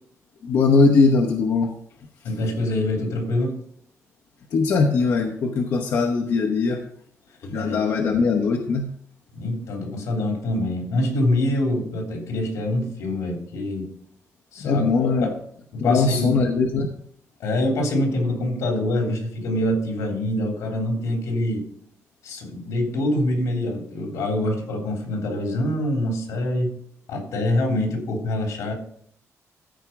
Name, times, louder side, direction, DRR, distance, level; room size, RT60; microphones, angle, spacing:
voice 1, 0.4-1.7 4.5-6.8 7.5-8.9 14.6-15.3 15.8-16.9, left 4 dB, 50° left, 3 dB, 0.9 m, -20 dB
voice 2, 2.2-3.6 7.4-7.8 8.1-8.2 9.3-13.9 14.5-15.3 15.7-16.4 17.4-21.6 22.2-26.8 27.1-28.7, left 1 dB, 80° left, 1 dB, 3.4 m, -25 dB
14.0 x 5.0 x 5.8 m, 0.66 s
cardioid pair, 180°, 5 cm